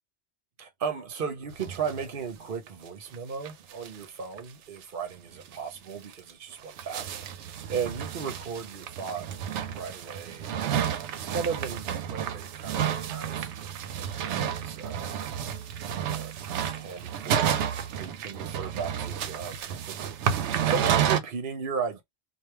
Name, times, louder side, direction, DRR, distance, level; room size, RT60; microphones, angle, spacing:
voice 1, 0.6-15.2 16.0-22.0, right 6 dB, 55° right, 0.8 m, -36 dB
sound 1, 1.6-2.1 2.4-2.5 2.7-2.8 3.1-3.2 3.4-4.1 4.4-4.5 4.8-4.9 5.4-5.6 6.1-21.2, right 9 dB, 90° right, 0.9 m, -31 dB
3.3 x 2.4 x 4.4 m
omnidirectional pair, 1.2 m